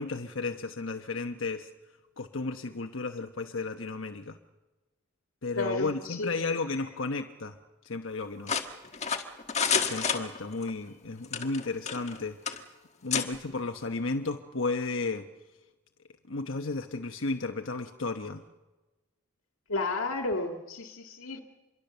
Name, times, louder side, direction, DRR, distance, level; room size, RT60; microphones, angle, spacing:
voice 1, 0.0-1.7 2.2-4.4 5.4-7.6 7.8-8.6 9.9-12.6 13.0-15.3 16.3-18.4, left 3 dB, 70° left, 1.1 m, -33 dB
voice 2, 5.5-6.3 19.7-21.4, left 2 dB, 85° left, 1.9 m, -32 dB
sound 1, 8.5-10.7 11.2-12.2 12.5-12.6 13.1-13.3, left 6 dB, 30° left, 1.6 m, -29 dB
26.5 x 22.5 x 6.9 m
head